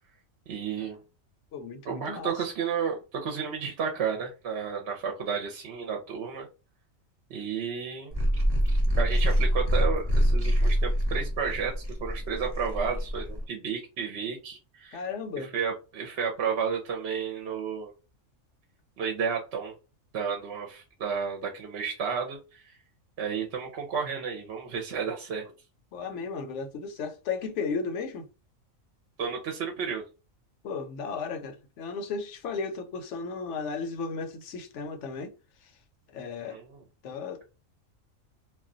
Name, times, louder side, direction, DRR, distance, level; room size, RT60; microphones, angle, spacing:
voice 1, 0.5-1.0 1.9-6.5 7.3-8.2 9.0-11.7 12.0-15.0 15.5-17.9 19.0-19.7 20.1-22.6 23.2-25.4 29.2-30.1 36.4-36.8, right 6 dB, 60° right, 0.8 m, -32 dB
voice 2, 1.5-2.4 14.9-15.5 25.9-28.3 30.6-35.3 35.6-35.7 36.1-36.6 37.0-37.4, left 5 dB, 70° left, 0.9 m, -35 dB
sound 1, 8.1-13.4, equal, 20° right, 0.7 m, -25 dB
2.3 x 2.2 x 3.7 m
omnidirectional pair, 1.4 m